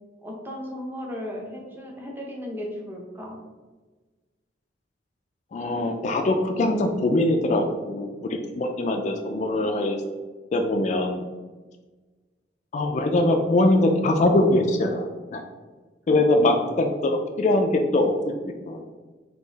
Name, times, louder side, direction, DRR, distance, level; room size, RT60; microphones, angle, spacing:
voice 1, 0.2-3.4 16.4-16.5, left 1 dB, 10° right, -1 dB, 0.7 m, -35 dB
voice 2, 5.5-10.0 10.5-11.2 12.7-15.1 15.3-15.4 16.1-18.1 18.7-18.8, left 2 dB, 40° left, 4 dB, 0.3 m, -22 dB
3.7 x 2.7 x 4.0 m, 1.3 s
head